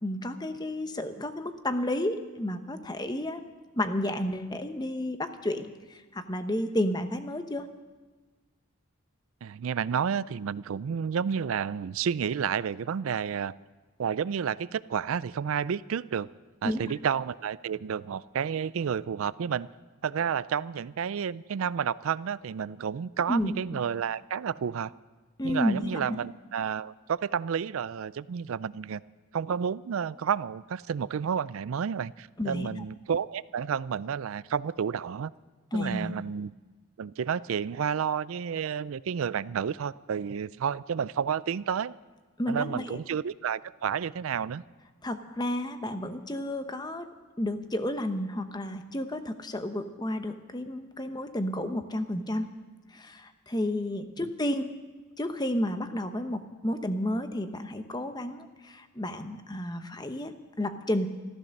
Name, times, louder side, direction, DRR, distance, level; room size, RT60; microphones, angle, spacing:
voice 1, 0.0-7.7 16.6-16.9 23.3-23.5 25.4-26.0 32.4-32.7 35.7-36.1 42.4-43.0 45.0-47.1 47.4-52.5 52.9-54.7 55.2-61.1, left 1 dB, 20° left, 8 dB, 0.8 m, -31 dB
voice 2, 9.4-13.5 14.0-16.3 16.6-19.7 20.0-24.9 25.4-29.0 29.3-35.3 35.7-36.5 37.0-42.0 42.5-44.6, right 7 dB, 70° right, 19 dB, 0.4 m, -31 dB
14.5 x 14.0 x 6.5 m, 1.3 s
head